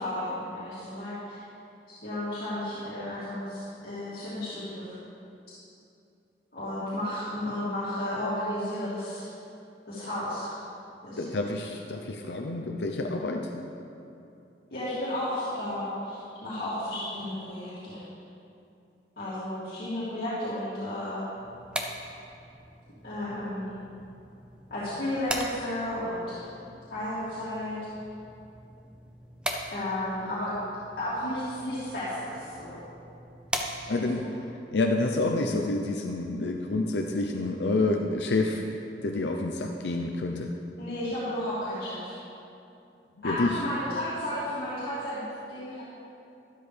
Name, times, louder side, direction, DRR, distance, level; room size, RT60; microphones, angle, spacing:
voice 1, 0.0-1.4 1.9-5.0 6.5-9.3 9.9-10.5 11.0-11.4 14.7-18.0 19.2-21.2 23.0-23.7 24.7-26.4 26.9-27.8 29.7-30.5 31.0-32.8 33.9-34.3 40.8-42.1 43.2-45.2 45.5-45.8, left 1 dB, 55° left, -12 dB, 2.8 m, -33 dB
voice 2, 11.2-13.5 33.9-34.2 34.7-38.6 39.0-40.5 43.2-43.5, left 2 dB, 80° left, 2 dB, 0.7 m, -28 dB
sound 1, 21.4-34.2, equal, 5° right, 0.7 m, -40 dB
12.5 x 12.0 x 3.4 m, 2.7 s
head